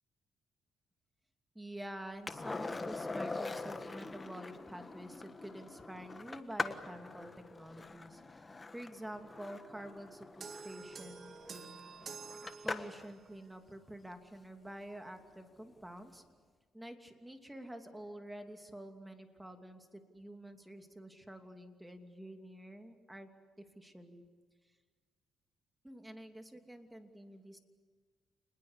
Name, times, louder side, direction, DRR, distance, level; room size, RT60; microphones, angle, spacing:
voice 1, 1.5-11.3 12.6-16.2 16.7-23.3 23.6-24.2 25.8-27.6, right 1 dB, 5° right, 5 dB, 2.8 m, -48 dB
Skateboard, 2.3-13.1 15.7-15.8, left 3 dB, 25° left, 1.4 m, -43 dB
sound 1, 10.4-13.3, right 5 dB, 50° right, 2.4 m, -49 dB
28.5 x 21.0 x 8.3 m, 1.5 s
cardioid pair, 90°, 0 cm